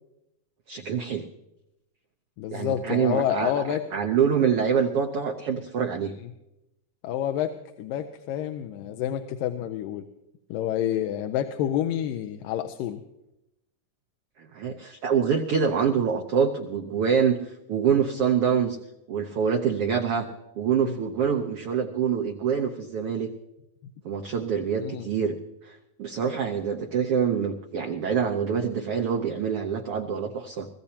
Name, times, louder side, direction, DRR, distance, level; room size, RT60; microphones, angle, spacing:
voice 1, 0.7-1.2 2.5-3.6 3.9-6.1 14.4-18.8 19.1-20.3 20.6-23.3 24.0-25.4 25.6-30.7, right 7 dB, 90° right, 4 dB, 1.2 m, -25 dB
voice 2, 2.4-3.8 6.2-6.3 7.0-10.0 10.5-13.0 20.7-21.0 24.8-25.1, left 11 dB, 90° left, 7 dB, 2.4 m, -29 dB
24.0 x 15.0 x 2.8 m, 0.90 s
omnidirectional pair, 3.8 m